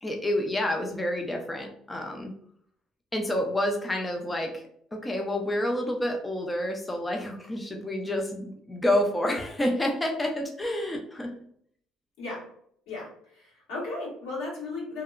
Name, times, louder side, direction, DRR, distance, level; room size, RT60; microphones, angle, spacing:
voice 1, 0.0-2.3 3.1-4.6 4.9-11.3, left 1 dB, 10° left, 2 dB, 0.3 m, -29 dB
voice 2, 12.9-15.0, left 3 dB, 90° left, -5 dB, 1.5 m, -36 dB
2.8 x 2.1 x 2.3 m, 0.65 s
cardioid pair, 145°, 0 cm